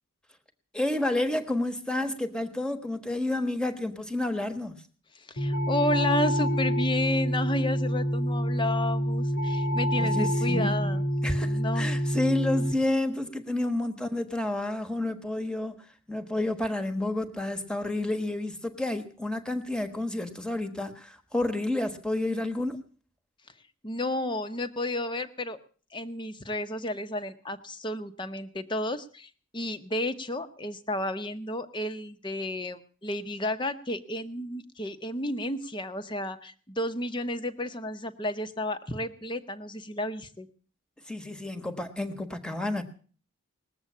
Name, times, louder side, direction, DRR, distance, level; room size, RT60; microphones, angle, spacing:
voice 1, 0.7-4.8 9.9-15.7 16.1-22.8 41.0-42.8, left 1 dB, 5° left, 6 dB, 1.3 m, -30 dB
voice 2, 5.2-11.1 11.4-11.9 23.8-25.6 25.9-40.5, left 1 dB, 20° left, 10 dB, 1.0 m, -32 dB
sound 1, 5.4-12.7, equal, 85° left, 2.0 m, -27 dB
20.0 x 7.9 x 8.6 m, 0.43 s
head